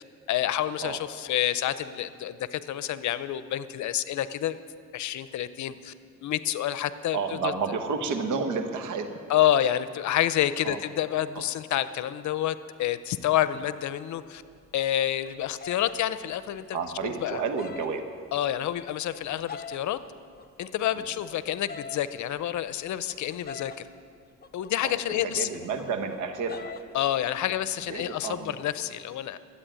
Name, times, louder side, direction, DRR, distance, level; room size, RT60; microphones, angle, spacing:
voice 1, 0.0-4.6 4.9-5.9 6.2-7.5 9.3-14.4 14.7-16.8 17.0-17.4 18.3-20.0 20.6-23.7 24.5-25.5 26.9-29.4, left 12 dB, 70° left, 14 dB, 0.7 m, -28 dB
voice 2, 7.1-9.1 10.6-10.8 11.3-11.4 16.7-18.1 21.0-21.1 24.8-26.7 27.4-27.5 27.9-28.5, right 5 dB, 80° right, 7 dB, 1.4 m, -31 dB
sound 1, 14.2-17.9 18.3-20.0 20.4-23.9 24.4-26.9 27.2-27.5 27.8-28.4, left 5 dB, 35° left, 0.8 m, -44 dB
13.0 x 8.6 x 8.9 m, 2.2 s
cardioid pair, 90°, 30 cm